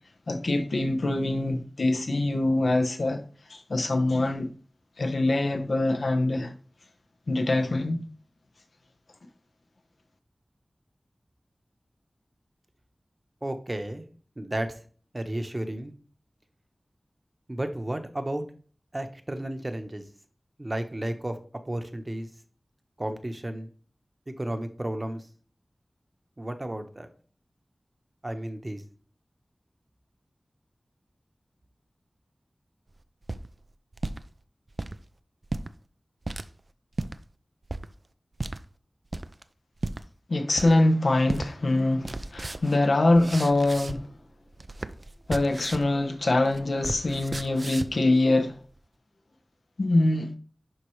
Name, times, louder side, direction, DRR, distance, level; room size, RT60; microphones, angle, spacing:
voice 1, 0.3-3.2 3.5-4.5 5.0-6.5 7.3-8.0 40.3-44.1 45.3-48.5 49.8-50.3, left 2 dB, 80° left, 1.0 m, -24 dB
voice 2, 13.4-14.0 14.4-14.8 15.1-15.9 17.5-18.4 18.9-20.0 20.6-21.4 21.6-22.3 23.0-23.7 24.3-25.3 26.4-27.1 28.2-28.8, right 1 dB, 35° right, 1.0 m, -33 dB
sound 1, 33.0-34.2 34.7-35.0 35.4-35.7 36.2-36.5 36.9-37.2 37.7-37.9 38.4-38.6 39.1-39.4 39.8-40.0 40.6-40.9 41.3-41.5 41.8-44.2 44.5-45.9 46.2-48.0, right 2 dB, 50° right, 0.5 m, -34 dB
11.0 x 4.2 x 3.2 m
wide cardioid pair, 65°, 0 cm